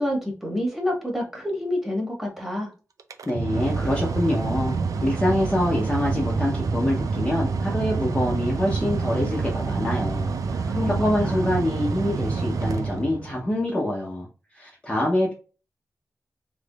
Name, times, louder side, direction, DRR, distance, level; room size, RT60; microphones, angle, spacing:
voice 1, 0.0-2.7 10.7-11.4, left 1 dB, 5° right, -1 dB, 1.5 m, -28 dB
Mechanical fan, 3.0-13.5, right 4 dB, 90° right, 0.4 m, -27 dB
voice 2, 3.3-10.3 10.6-14.3 14.5-15.3, left 1 dB, 20° left, -3 dB, 0.8 m, -25 dB
3.5 x 3.1 x 2.4 m, 0.35 s
wide cardioid pair, 150°, 6 cm